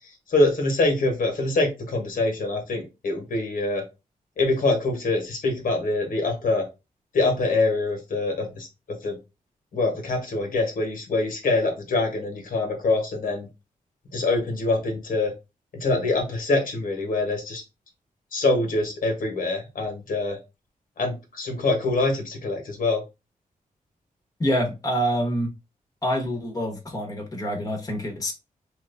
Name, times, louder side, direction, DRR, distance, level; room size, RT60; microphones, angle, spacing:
voice 1, 0.3-3.8 4.4-6.7 7.1-9.2 9.7-13.5 14.1-15.3 15.7-17.6 18.3-20.4 21.0-23.0, left 2 dB, 75° left, 1.1 m, -24 dB
voice 2, 24.4-25.5 26.0-28.3, equal, 25° left, 1.0 m, -26 dB
3.1 x 2.4 x 3.3 m
wide cardioid pair, 110°, 15 cm